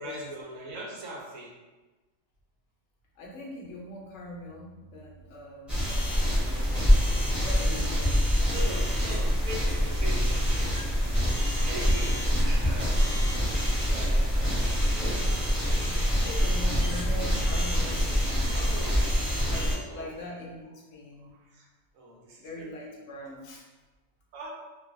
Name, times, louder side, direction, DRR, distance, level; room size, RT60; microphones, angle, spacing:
voice 1, 0.0-1.5 6.2-7.5 7.9-8.1 8.5-11.0 11.6-13.0 13.2-14.9 18.5-19.3 19.9-20.2 20.6-20.8 21.3-21.7 21.9-22.7 24.3-24.5, equal, 85° right, -1 dB, 1.0 m, -41 dB
voice 2, 3.2-6.0 6.4-6.6 7.4-8.3 8.7-9.1 14.0-14.1 16.1-18.5 19.4-21.3 22.4-23.6, left 1 dB, 70° left, -2 dB, 0.9 m, -41 dB
sound 1, 5.7-19.7, equal, ahead, 0.7 m, -25 dB
2.5 x 2.3 x 2.5 m, 1.2 s
omnidirectional pair, 1.4 m